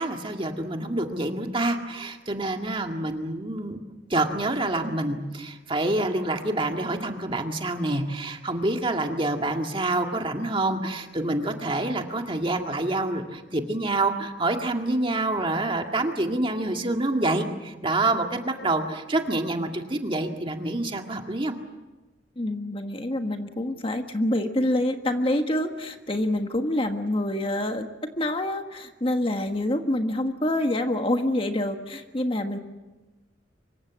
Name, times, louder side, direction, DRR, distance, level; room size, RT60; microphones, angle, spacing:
voice 1, 0.0-3.8 4.1-21.5, right 2 dB, 30° right, 4 dB, 2.0 m, -27 dB
voice 2, 22.4-27.9 28.2-32.6, left 1 dB, 30° left, 6 dB, 1.5 m, -26 dB
25.5 x 23.5 x 7.4 m, 1.1 s
head